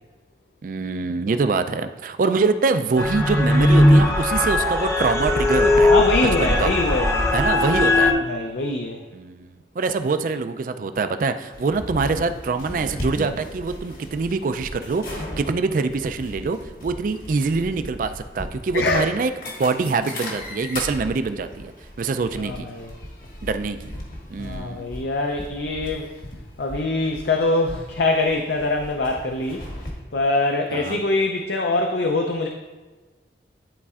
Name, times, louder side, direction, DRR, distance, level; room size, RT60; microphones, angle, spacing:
voice 1, 0.6-5.9 6.2-6.7 7.3-8.1 9.1-21.7 22.0-22.7 23.4-23.9 24.3-24.9 30.7-31.0, right 4 dB, 50° right, 10 dB, 0.3 m, -24 dB
sound 1, 3.0-8.1, left 1 dB, 15° left, 0.6 m, -18 dB
voice 2, 5.9-7.3 7.9-9.0 18.7-19.1 22.5-22.9 24.4-26.1 26.6-29.6 30.1-32.5, left 2 dB, 70° left, 3 dB, 0.5 m, -23 dB
sound 2, 11.5-29.9, left 1 dB, 50° left, 1.3 m, -37 dB
11.0 x 4.2 x 2.4 m, 1.3 s
head